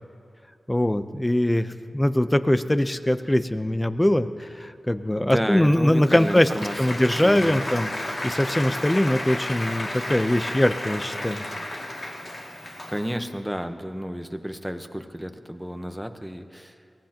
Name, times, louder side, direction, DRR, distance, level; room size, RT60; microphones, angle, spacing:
voice 1, 0.7-6.5 6.8-11.4, left 1 dB, 15° left, 10 dB, 0.7 m, -22 dB
voice 2, 5.2-7.7 12.9-16.7, equal, 5° right, 6 dB, 1.0 m, -31 dB
Applause, 5.7-13.3, left 1 dB, 50° left, 2.4 m, -33 dB
22.5 x 17.5 x 3.0 m, 2.7 s
wide cardioid pair, 70°, 0 cm